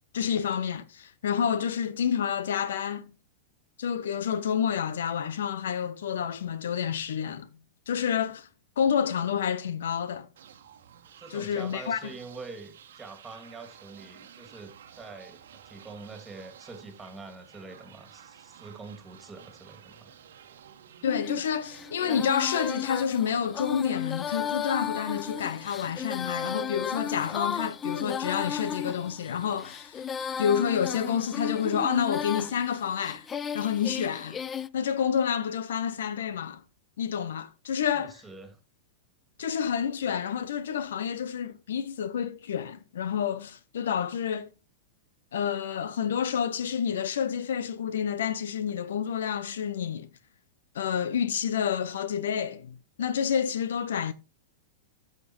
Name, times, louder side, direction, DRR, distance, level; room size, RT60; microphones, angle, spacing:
voice 1, 0.1-3.1 3.8-7.5 7.9-8.5 8.8-10.3 11.3-12.0 21.0-30.1 30.4-33.3 33.5-34.4 34.7-36.6 37.0-38.2 39.4-44.5 45.3-50.1 50.7-54.1, left 8 dB, 65° left, 0.7 m, -29 dB
sound 1, 10.4-27.1, right 8 dB, 60° right, 1.3 m, -53 dB
voice 2, 11.2-20.1 37.9-38.6, right 3 dB, 10° right, 2.4 m, -45 dB
Female singing, 21.1-34.7, left 8 dB, 20° left, 0.4 m, -34 dB
13.5 x 6.6 x 3.1 m
figure-of-eight pair, 100°, 0 cm